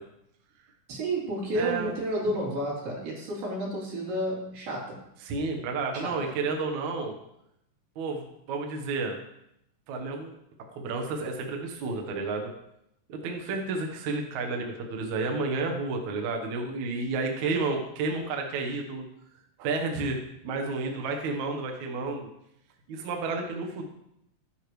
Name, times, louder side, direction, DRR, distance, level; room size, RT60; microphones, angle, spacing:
voice 1, 0.9-5.0 5.9-6.2, right 1 dB, 85° right, -4 dB, 5.0 m, -31 dB
voice 2, 1.6-1.9 5.3-7.1 8.0-9.2 9.9-10.3 10.8-12.5 13.1-19.0 19.6-22.3 22.9-23.9, right 3 dB, 65° right, 3 dB, 2.3 m, -31 dB
15.0 x 10.0 x 3.1 m, 0.79 s
omnidirectional pair, 3.9 m